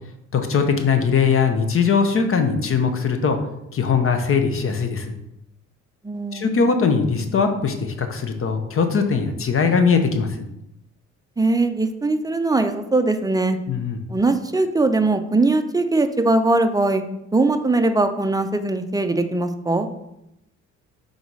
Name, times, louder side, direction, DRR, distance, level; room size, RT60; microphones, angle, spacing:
voice 1, 0.3-3.4 3.7-5.1 6.3-10.3 13.7-14.0, left 5 dB, 45° left, 7 dB, 0.9 m, -20 dB
voice 2, 6.0-6.5 11.4-13.6 14.1-17.0 17.3-19.9, right 2 dB, 10° right, 8 dB, 0.5 m, -20 dB
5.4 x 4.0 x 4.7 m, 0.85 s
cardioid pair, 90°, 30 cm